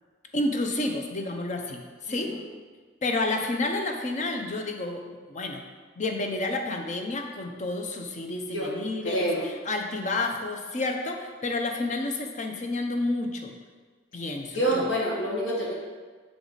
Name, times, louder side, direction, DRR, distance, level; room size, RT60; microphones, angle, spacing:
voice 1, 0.3-2.4 3.0-5.6 6.0-13.5 14.1-14.9, left 2 dB, 40° left, 3 dB, 0.6 m, -30 dB
voice 2, 2.1-2.4 8.5-8.7 9.0-9.5 14.5-15.7, equal, 85° left, -4 dB, 1.7 m, -27 dB
6.2 x 4.7 x 3.9 m, 1.4 s
head